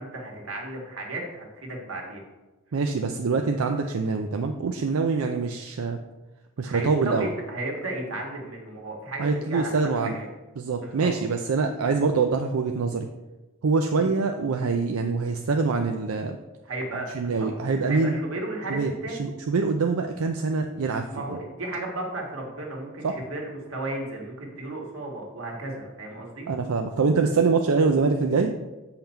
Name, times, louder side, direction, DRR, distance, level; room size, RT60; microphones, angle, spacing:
voice 1, 0.0-2.2 6.6-10.3 10.8-11.1 13.9-14.1 16.6-17.5 17.8-19.2 21.1-26.5, right 2 dB, 70° right, 0 dB, 1.8 m, -34 dB
voice 2, 2.7-6.0 6.6-7.3 9.2-10.2 10.6-13.1 13.6-16.4 17.1-18.2 18.7-18.9 19.2-21.1 23.0-23.1 26.5-28.5, right 4 dB, 90° right, 5 dB, 0.5 m, -24 dB
7.2 x 5.7 x 4.4 m, 1.1 s
head